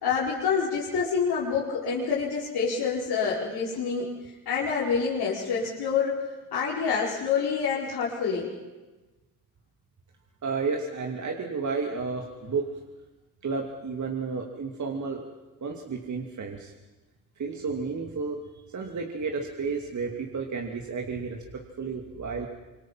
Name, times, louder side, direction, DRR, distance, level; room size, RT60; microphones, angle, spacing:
voice 1, 0.0-6.2 6.5-8.5, left 6 dB, 60° left, -7 dB, 5.1 m, -27 dB
voice 2, 10.4-12.7 13.4-15.2 15.6-16.7 17.4-18.4 18.7-22.5, right 4 dB, 45° right, 2 dB, 2.7 m, -32 dB
26.0 x 22.5 x 5.9 m, 1.2 s
hypercardioid pair, 60°, 42 cm